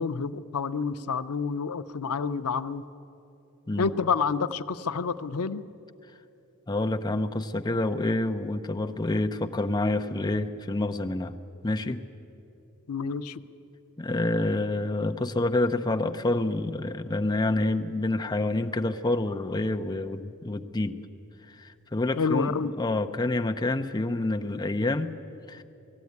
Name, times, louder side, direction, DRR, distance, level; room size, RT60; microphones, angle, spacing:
voice 1, 0.0-2.8 3.8-5.6 12.9-13.4 22.2-22.7, left 5 dB, 90° left, 11 dB, 0.6 m, -28 dB
voice 2, 6.7-11.4 11.6-12.0 14.0-21.0 21.5-25.1 25.5-25.6, left 2 dB, 20° left, 7 dB, 0.6 m, -28 dB
19.0 x 14.0 x 9.5 m, 2.9 s
head